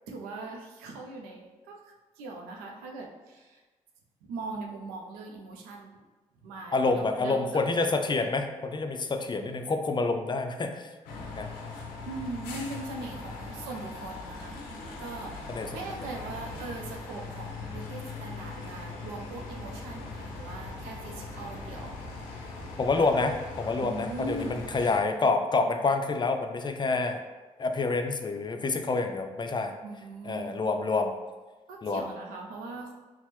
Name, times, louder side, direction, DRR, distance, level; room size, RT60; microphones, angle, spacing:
voice 1, 0.1-3.6 4.2-6.0 6.4-7.6 12.0-14.6 15.0-22.0 22.2-23.1 23.8-24.9 29.8-30.5 31.7-32.9, right 3 dB, 90° right, 1 dB, 0.4 m, -40 dB
voice 2, 6.7-10.9 11.4-11.5 15.5-15.7 22.8-27.2 27.6-29.7 30.2-31.1 31.8-32.0, left 3 dB, 30° left, 5 dB, 0.4 m, -27 dB
sound 1, 11.1-25.0, left 3 dB, 90° left, 0.5 m, -40 dB
4.1 x 2.0 x 3.1 m, 1.2 s
hypercardioid pair, 45°, 15 cm